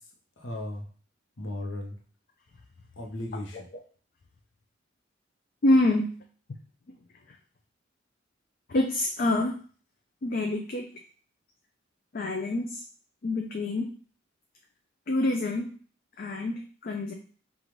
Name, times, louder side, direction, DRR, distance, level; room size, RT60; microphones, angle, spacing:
voice 1, 0.0-0.9 1.4-2.0 3.0-3.7, left 1 dB, 85° left, 1 dB, 1.0 m, -36 dB
voice 2, 5.6-6.1 8.7-9.6 10.2-10.8 12.1-12.8 13.2-13.9 15.1-15.7 16.2-17.1, left 2 dB, 50° left, 2 dB, 0.4 m, -26 dB
5.1 x 2.5 x 3.0 m, 0.42 s
head